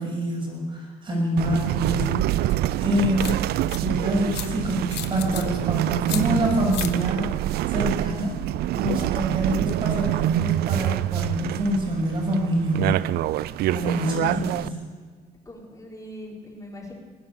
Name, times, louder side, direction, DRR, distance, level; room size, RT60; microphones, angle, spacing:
voice 1, 0.0-3.4 3.8-8.3 8.7-13.0 13.7-14.7, equal, 30° right, 0 dB, 6.8 m, -26 dB
sound 1, 1.4-14.7, right 14 dB, 70° right, 0.4 m, -26 dB
sound 2, 2.5-2.6 3.2-3.8 4.3-4.5 4.9-5.4 6.1-6.2 6.7-6.9, left 14 dB, 85° left, 1.2 m, -33 dB
voice 2, 13.9-14.5 15.5-16.9, left 2 dB, 20° left, -2 dB, 4.6 m, -39 dB
21.0 x 9.8 x 7.1 m, 1.5 s
cardioid pair, 110°, 17 cm